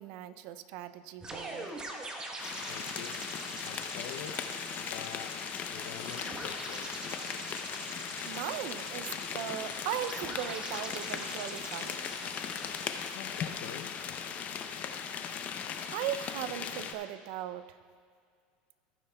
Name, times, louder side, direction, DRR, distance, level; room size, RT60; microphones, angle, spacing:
voice 1, 0.0-1.7 8.3-12.0 15.9-17.8, right 11 dB, 70° right, 13 dB, 0.5 m, -38 dB
sound 1, 1.2-13.2, right 2 dB, 20° right, 1.1 m, -44 dB
sound 2, 2.4-16.9, left 7 dB, 40° left, 0.6 m, -38 dB
voice 2, 2.6-3.2 3.6-4.5 4.8-7.1 13.1-14.0, left 9 dB, 80° left, 8 dB, 0.6 m, -46 dB
15.0 x 9.9 x 2.3 m, 2.1 s
supercardioid pair, 125°, 4 cm